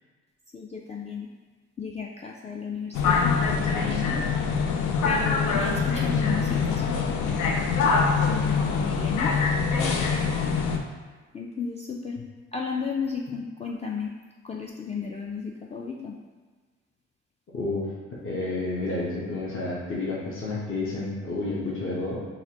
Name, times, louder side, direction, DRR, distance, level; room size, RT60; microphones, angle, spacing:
voice 1, 0.5-1.3 1.8-4.2 5.0-7.9 8.3-9.4 9.8-10.5 11.3-12.2 12.5-14.1 14.4-16.2, left 5 dB, 20° left, -1 dB, 0.3 m, -34 dB
sound 1, 2.9-10.8, left 5 dB, 85° left, 0.5 m, -24 dB
voice 2, 17.5-17.9 18.2-22.2, left 2 dB, 45° left, -6 dB, 0.9 m, -30 dB
4.0 x 2.4 x 2.9 m, 1.4 s
supercardioid pair, 55°, 30 cm